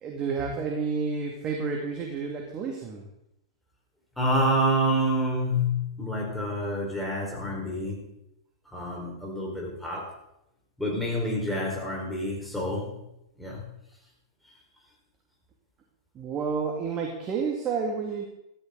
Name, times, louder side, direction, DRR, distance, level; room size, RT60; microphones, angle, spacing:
voice 1, 0.0-3.1 16.1-18.2, right 5 dB, 30° right, 1 dB, 2.2 m, -30 dB
voice 2, 4.2-8.1 8.7-10.1 10.8-12.9 13.4-13.6, equal, 5° left, -3 dB, 4.7 m, -28 dB
13.5 x 13.5 x 3.9 m, 0.84 s
hypercardioid pair, 110°, 3 cm